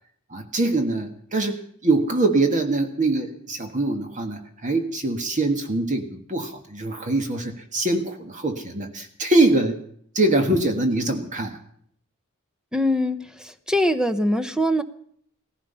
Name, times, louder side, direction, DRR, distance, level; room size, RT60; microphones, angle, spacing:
voice 1, 0.3-9.8 10.1-11.6, right 2 dB, 35° right, 1.6 m, -23 dB
voice 2, 12.7-13.2 13.7-14.8, left 1 dB, 5° right, 0.8 m, -21 dB
16.5 x 16.0 x 5.6 m
head